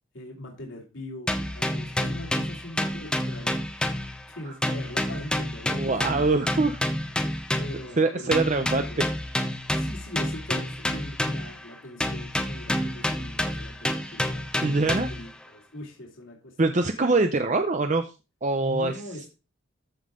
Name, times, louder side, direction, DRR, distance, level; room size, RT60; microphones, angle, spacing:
voice 1, 0.1-6.3 7.6-9.0 9.7-17.3 18.6-19.5, left 1 dB, 75° left, -1 dB, 2.8 m, -41 dB
sound 1, 1.3-4.4 4.6-7.9 8.3-11.6 12.0-15.3, left 1 dB, 5° left, 0.8 m, -29 dB
voice 2, 5.7-6.8 8.0-8.8 14.6-15.1 16.6-18.1 18.4-18.9, right 3 dB, 35° right, 7 dB, 0.6 m, -23 dB
14.0 x 5.4 x 3.7 m, 0.30 s
head